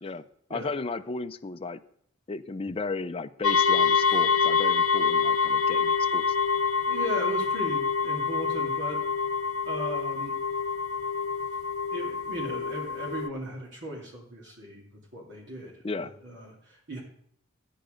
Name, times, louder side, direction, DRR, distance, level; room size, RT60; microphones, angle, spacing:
voice 1, 0.0-1.8 2.3-6.2 15.8-16.1, left 3 dB, 25° left, 9 dB, 0.5 m, -34 dB
sound 1, 3.4-13.3, left 5 dB, 85° left, 0.8 m, -26 dB
voice 2, 6.9-9.0 9.6-10.3 11.9-17.0, right 1 dB, 55° right, -3 dB, 2.7 m, -37 dB
13.0 x 9.2 x 5.1 m, 0.67 s
head